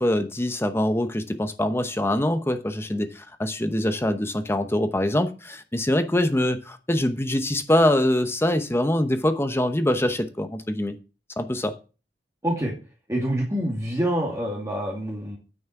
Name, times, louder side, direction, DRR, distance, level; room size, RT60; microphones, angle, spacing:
voice 1, 0.0-11.0 11.4-11.8, left 1 dB, 15° left, 0.9 m, -24 dB
voice 2, 13.1-15.4, right 1 dB, 15° right, 2.4 m, -26 dB
9.4 x 6.3 x 5.9 m
head